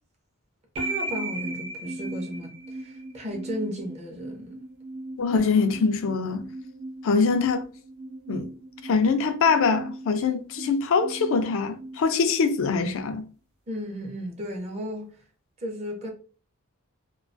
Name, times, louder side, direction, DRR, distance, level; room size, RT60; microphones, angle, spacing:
voice 1, 0.8-4.6 13.7-15.2 15.6-16.1, equal, 30° right, 0.5 m, -34 dB
sound 1, 0.8-12.8, right 2 dB, 70° right, 0.7 m, -37 dB
voice 2, 5.2-6.5 7.0-7.7 8.3-8.5 8.8-13.2, left 5 dB, 65° left, 0.4 m, -23 dB
2.3 x 2.2 x 2.5 m
head